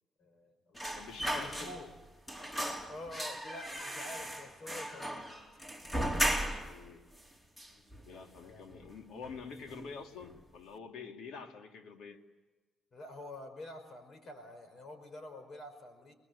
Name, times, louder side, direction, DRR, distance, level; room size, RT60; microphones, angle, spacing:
voice 1, 0.2-0.9 1.4-1.9 2.5-5.3 7.7-8.6 12.9-16.1, left 1 dB, 50° left, 7 dB, 5.0 m, -48 dB
sound 1, 0.8-2.0 2.3-6.8 7.2-7.3 7.6-8.4 8.7-8.9 9.2-9.9 10.2-10.4, right 1 dB, 10° left, 3.8 m, -36 dB
voice 2, 0.9-1.8 6.4-7.0 8.1-12.2, left 5 dB, 80° left, 3 dB, 2.6 m, -47 dB
29.5 x 20.5 x 8.2 m, 1.2 s
cardioid pair, 90°, 0 cm